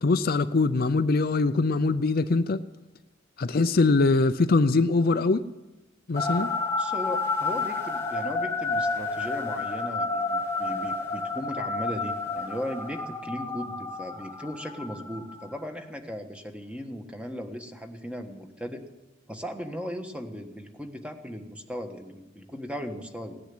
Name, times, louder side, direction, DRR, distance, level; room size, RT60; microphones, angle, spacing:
voice 1, 0.0-2.6 3.4-5.4 6.1-6.5, left 3 dB, 50° left, 11 dB, 0.5 m, -22 dB
sound 1, 6.2-15.6, left 3 dB, 15° left, 1.6 m, -30 dB
voice 2, 6.8-18.8 19.3-23.4, equal, 5° right, 5 dB, 1.3 m, -37 dB
17.5 x 10.0 x 7.7 m, 1.0 s
head